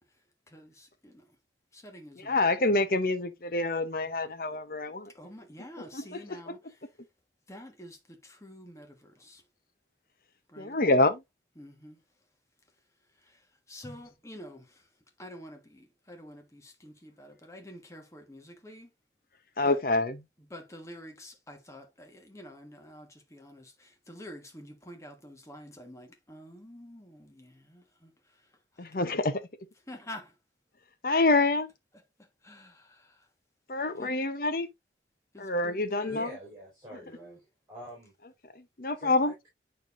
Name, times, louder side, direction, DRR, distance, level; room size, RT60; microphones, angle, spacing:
voice 1, 0.5-1.4 1.7-2.7 5.1-7.0 7.5-9.4 10.5-10.8 11.6-12.0 13.1-14.9 15.2-18.9 19.6-19.8 20.5-29.0 29.9-30.4 32.2-33.3 34.0-34.1 35.3-36.3 37.0-37.4, left 1 dB, 15° left, 1.3 m, -48 dB
voice 2, 2.3-5.1 5.9-6.2 10.6-11.2 19.6-20.2 28.8-29.4 31.0-31.7 33.7-34.7 35.4-36.3 38.6-39.3, left 2 dB, 50° left, 0.8 m, -26 dB
voice 3, 36.1-37.4 37.7-38.1 39.0-39.5, equal, 20° right, 4.1 m, -45 dB
9.1 x 4.4 x 2.5 m
head